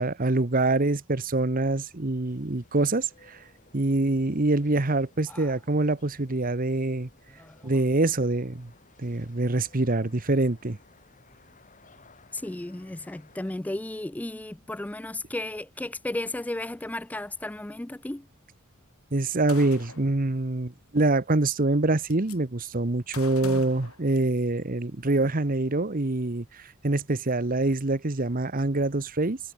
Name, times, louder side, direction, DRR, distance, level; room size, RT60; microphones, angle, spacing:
voice 1, 0.0-3.4 3.7-7.1 7.6-8.7 9.0-10.8 19.1-29.4, right 2 dB, 40° right, 1.1 m, -25 dB
sound 1, 2.3-13.5, left 3 dB, 35° left, 6.0 m, -58 dB
voice 2, 7.4-7.7 12.3-18.2 23.4-23.6, left 1 dB, 5° left, 0.3 m, -34 dB
Gunshot gunfire, 19.5-20.1 21.3-21.4 21.7-22.4 23.1-24.6, left 6 dB, 90° left, 6.7 m, -44 dB
head